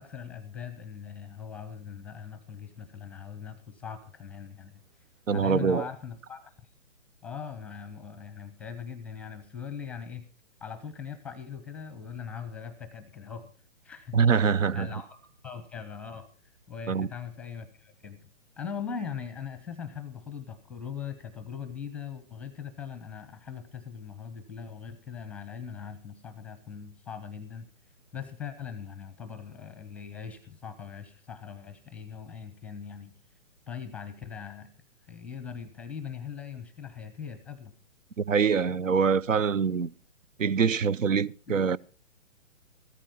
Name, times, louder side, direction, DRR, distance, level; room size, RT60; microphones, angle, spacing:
voice 1, 0.0-4.8 5.3-6.5 7.2-10.3 10.6-13.5 13.8-14.2 14.7-15.2 15.4-16.3 16.7-18.2 18.6-27.7 28.1-33.1 33.7-34.7 35.0-37.7 41.5-41.6, left 7 dB, 5° left, 0.6 m, -40 dB
voice 2, 5.3-5.9 14.1-14.9 16.9-17.1 38.2-39.9 40.4-41.8, right 6 dB, 85° right, 0.7 m, -24 dB
14.5 x 13.5 x 4.3 m
hypercardioid pair, 140°, 37 cm